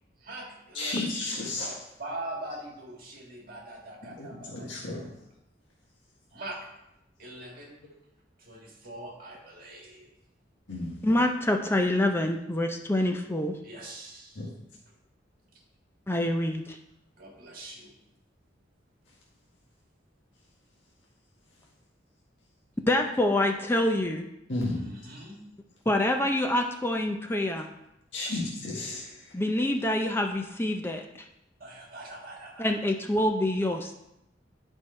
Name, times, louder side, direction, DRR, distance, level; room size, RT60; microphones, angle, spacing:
voice 1, 0.2-4.7 6.3-6.6 7.2-7.8 8.4-10.1 13.6-14.5 17.2-17.9 24.7-25.4 28.2-28.4 31.6-32.7, right 1 dB, 50° right, -1 dB, 1.9 m, -42 dB
voice 2, 0.7-1.7 4.2-5.1 10.7-11.0 14.3-14.5 24.5-24.9 28.1-29.3, left 2 dB, 80° left, -4 dB, 1.5 m, -33 dB
voice 3, 11.0-13.6 16.1-16.8 22.9-24.3 25.9-27.7 29.3-31.1 32.6-33.9, left 1 dB, 10° left, 4 dB, 0.5 m, -26 dB
10.5 x 4.5 x 4.3 m, 0.85 s
head